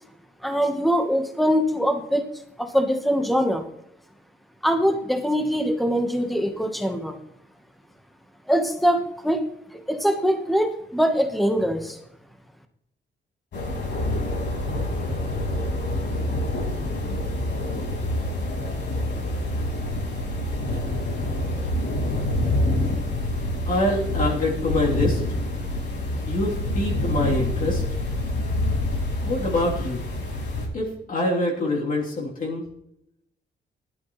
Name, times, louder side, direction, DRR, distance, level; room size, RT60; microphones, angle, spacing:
voice 1, 0.4-2.2 2.6-3.6 4.6-7.2 8.5-9.4 9.7-12.0, equal, ahead, 5 dB, 1.2 m, -23 dB
sound 1, 13.5-30.7, left 1 dB, 75° left, 4.8 m, -26 dB
voice 2, 23.6-25.2 26.3-27.8 29.2-30.0 30.7-32.6, left 1 dB, 50° left, -4 dB, 3.3 m, -25 dB
18.0 x 12.0 x 3.2 m, 0.80 s
wide cardioid pair, 145°, 19 cm